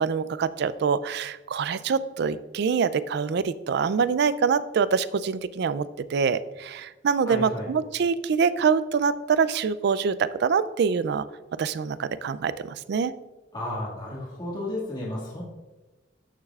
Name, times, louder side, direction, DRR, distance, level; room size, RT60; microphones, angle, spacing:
voice 1, 0.0-11.3 11.6-13.1, right 6 dB, 60° right, 15 dB, 0.3 m, -25 dB
voice 2, 7.3-7.7 13.5-15.4, left 1 dB, 25° left, -6 dB, 1.9 m, -33 dB
13.5 x 6.5 x 2.4 m, 1.2 s
head